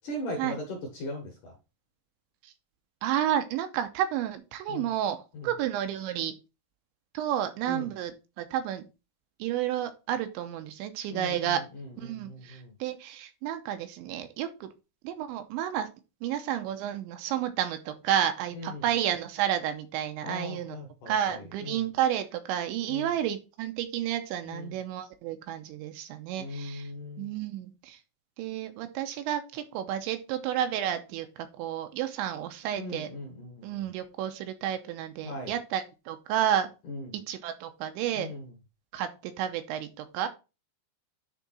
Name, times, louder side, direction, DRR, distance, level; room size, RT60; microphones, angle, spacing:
voice 1, 0.0-1.5 4.7-4.9 5.3-5.5 7.7-7.9 11.1-12.7 18.5-18.9 20.2-21.9 22.9-23.1 24.5-24.8 26.4-27.3 32.8-33.9 35.2-35.5 36.9-37.1 38.1-38.5, left 1 dB, 60° left, 1 dB, 2.3 m, -39 dB
voice 2, 3.0-6.3 7.1-8.8 9.4-11.6 12.0-14.7 15.0-15.9 16.2-20.8 21.1-26.9 27.2-28.0 28.4-33.1 33.6-36.7 37.3-38.3 38.9-40.3, right 10 dB, 85° right, 8 dB, 3.0 m, -31 dB
10.0 x 3.6 x 4.2 m, 0.29 s
omnidirectional pair, 5.5 m